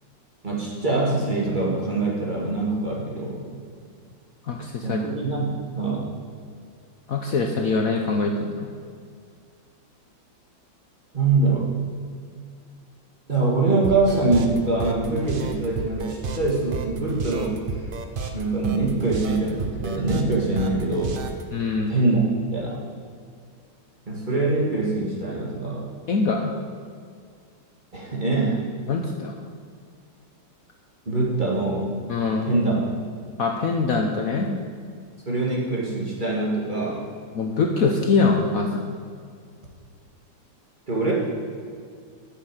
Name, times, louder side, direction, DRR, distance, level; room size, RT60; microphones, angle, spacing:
voice 1, 0.4-3.4 4.8-6.1 11.1-11.7 13.3-17.9 18.3-21.2 21.9-22.2 22.5-22.8 24.1-26.0 27.9-28.6 31.1-31.9 32.4-32.8 35.3-37.1 40.9-41.1, right 3 dB, 25° right, -3 dB, 2.1 m, -24 dB
voice 2, 4.4-5.0 7.1-8.7 21.5-21.9 26.1-26.5 28.9-29.3 32.1-32.5 33.4-34.5 37.3-39.0, left 4 dB, 60° left, 2 dB, 1.1 m, -23 dB
sound 1, 13.8-21.4, right 4 dB, 45° right, 0.7 m, -31 dB
9.6 x 6.9 x 7.6 m, 2.1 s
omnidirectional pair, 2.0 m